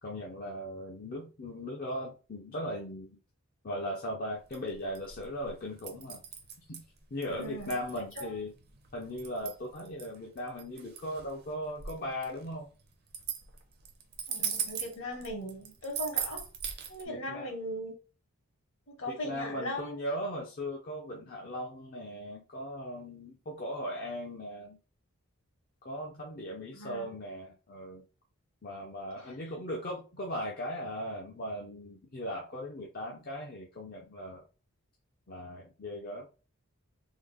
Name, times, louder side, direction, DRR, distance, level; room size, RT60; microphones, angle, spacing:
voice 1, 0.0-3.2 3.6-6.2 6.7-6.8 7.1-8.5 8.9-12.7 17.1-17.5 19.1-24.8 25.8-28.0 28.6-34.4 35.3-36.3, equal, 40° left, -2 dB, 0.5 m, -38 dB
sound 1, 4.4-17.0, right 8 dB, 45° right, 0.6 m, -39 dB
voice 2, 7.3-8.3 14.3-16.4 16.9-17.9 18.9-20.0 26.7-27.1, equal, 60° left, 2 dB, 1.1 m, -39 dB
3.6 x 2.0 x 3.4 m, 0.35 s
head